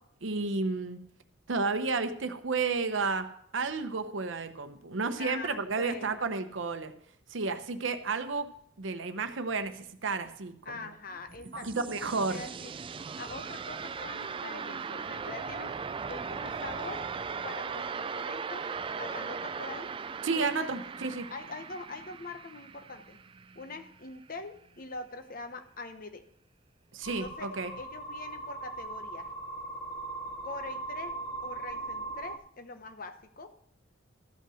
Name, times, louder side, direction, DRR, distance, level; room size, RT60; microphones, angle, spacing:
voice 1, 0.2-1.0 1.5-3.3 3.5-6.9 7.3-8.5 8.8-10.5 11.5-12.4 20.2-21.3 26.9-27.7, right 4 dB, 75° right, 9 dB, 0.8 m, -31 dB
voice 2, 5.2-6.3 10.6-12.7 13.2-17.1 17.4-18.7 19.0-19.9 20.3-20.9 21.3-23.2 23.5-26.3 27.1-29.3 30.4-33.6, left 3 dB, 45° left, 8 dB, 0.9 m, -43 dB
sound 1, 11.1-23.9, right 5 dB, 25° right, 0.3 m, -38 dB
sound 2, 27.0-32.4, right 2 dB, 15° left, 0.8 m, -39 dB
13.5 x 5.6 x 6.3 m, 0.71 s
head